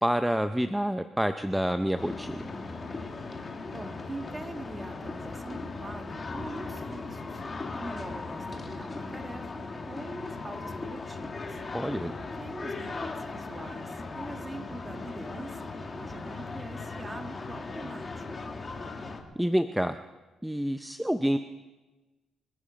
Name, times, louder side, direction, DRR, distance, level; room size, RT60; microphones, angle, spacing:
voice 1, 0.0-2.4 11.7-12.1 19.4-20.0 20.4-21.4, equal, 5° right, 10 dB, 0.6 m, -27 dB
sound 1, 2.0-19.2, left 3 dB, 30° left, 1.9 m, -38 dB
voice 2, 3.7-7.4 7.8-11.6 12.3-18.2, right 2 dB, 20° right, 6 dB, 1.7 m, -43 dB
26.5 x 9.8 x 5.2 m, 1.2 s
cardioid pair, 90°, 0 cm